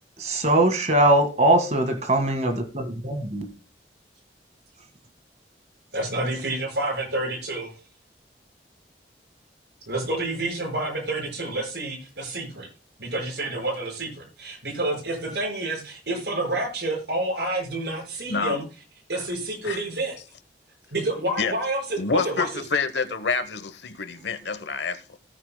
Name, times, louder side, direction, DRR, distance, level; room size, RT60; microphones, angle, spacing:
voice 1, 0.2-3.5, right 1 dB, 40° right, 1.8 m, -21 dB
voice 2, 5.9-7.7 9.9-12.7 13.0-18.6 19.1-20.2 20.9-22.0 22.2-22.5, right 2 dB, 75° right, 5.4 m, -29 dB
voice 3, 19.6-20.0 21.4-21.5 22.0-25.0, left 4 dB, 80° left, 1.0 m, -27 dB
17.0 x 9.1 x 2.2 m
head